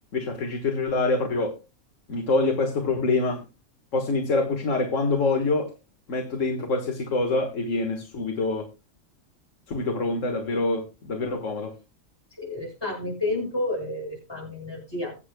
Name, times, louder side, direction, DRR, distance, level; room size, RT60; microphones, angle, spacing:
voice 1, 0.1-1.6 2.1-3.4 3.9-5.7 6.1-8.7 9.7-11.7, left 3 dB, 65° left, 1.9 m, -25 dB
voice 2, 12.4-15.1, left 2 dB, 15° left, 6.3 m, -30 dB
23.0 x 8.2 x 2.2 m
omnidirectional pair, 1.4 m